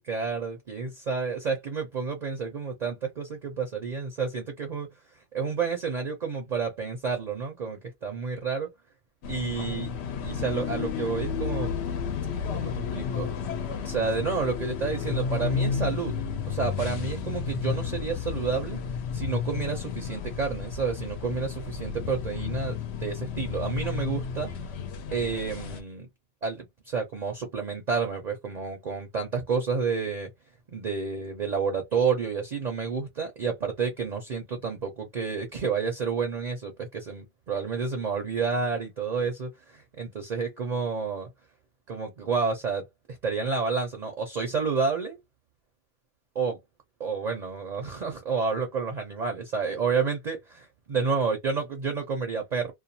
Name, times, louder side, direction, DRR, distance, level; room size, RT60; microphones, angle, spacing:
voice 1, 0.1-4.9 5.3-8.7 9.3-9.9 10.2-11.7 12.5-13.3 13.8-16.2 16.5-18.8 19.1-24.7 25.1-26.1 26.4-30.3 30.7-41.3 41.9-45.2 46.3-46.6 47.0-52.7, right 5 dB, 45° right, 0.6 m, -30 dB
sound 1, 9.2-25.8, left 6 dB, 70° left, 0.8 m, -32 dB
2.4 x 2.2 x 2.7 m
omnidirectional pair, 1.2 m